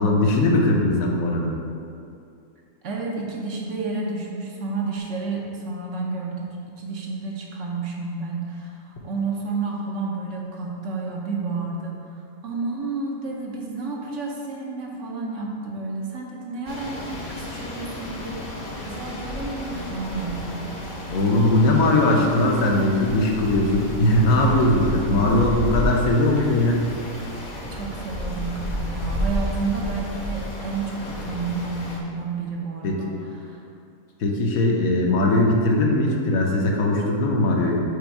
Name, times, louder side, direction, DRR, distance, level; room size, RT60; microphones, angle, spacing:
voice 1, 0.0-1.5 21.1-26.8 32.8-33.0 34.2-37.8, left 1 dB, 75° left, -1 dB, 1.2 m, -20 dB
voice 2, 2.8-21.2 21.8-22.3 27.7-33.7, right 3 dB, 65° right, -1 dB, 1.0 m, -31 dB
sound 1, 16.7-32.0, equal, 40° left, 0.8 m, -32 dB
5.2 x 4.0 x 4.5 m, 2.5 s
omnidirectional pair, 1.5 m